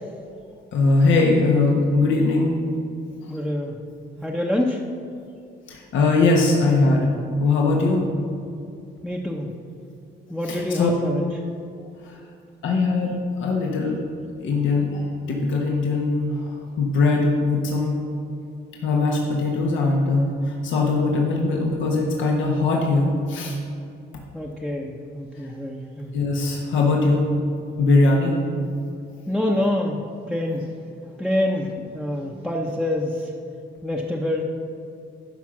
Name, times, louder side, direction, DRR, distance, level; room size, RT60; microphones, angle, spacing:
voice 1, 0.7-2.6 5.7-7.1 7.4-8.1 10.5-10.9 12.6-14.0 14.4-18.0 18.8-23.6 26.1-27.3 27.8-28.4, left 3 dB, 75° left, -1 dB, 1.2 m, -21 dB
voice 2, 3.3-3.7 4.2-4.9 9.0-9.5 10.3-11.3 24.3-26.1 29.3-30.7 31.2-33.3 33.8-34.4, left 1 dB, ahead, -3 dB, 0.8 m, -26 dB
12.0 x 5.1 x 6.0 m, 2.5 s
cardioid pair, 90°, 20 cm